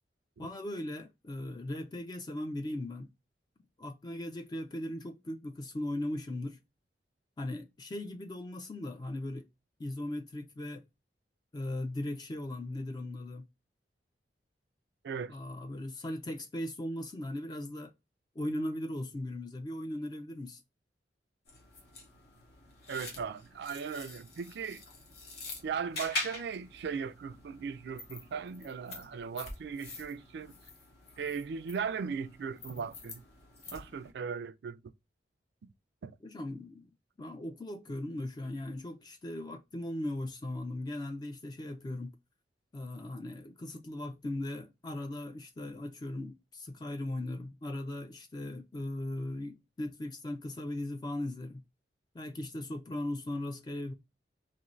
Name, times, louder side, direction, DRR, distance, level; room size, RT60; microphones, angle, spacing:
voice 1, 0.4-3.1 3.8-6.6 7.4-9.5 9.8-10.9 11.5-13.5 15.3-17.9 18.4-20.6 36.2-42.1 42.7-51.6 52.1-53.9, left 1 dB, 25° left, 0.3 m, -38 dB
sound 1, 21.5-34.1, left 2 dB, 65° left, 1.0 m, -45 dB
voice 2, 22.9-24.8 25.6-30.5 31.2-33.2 33.7-34.8 36.0-36.1, right 6 dB, 65° right, 0.3 m, -38 dB
2.6 x 2.5 x 3.0 m
head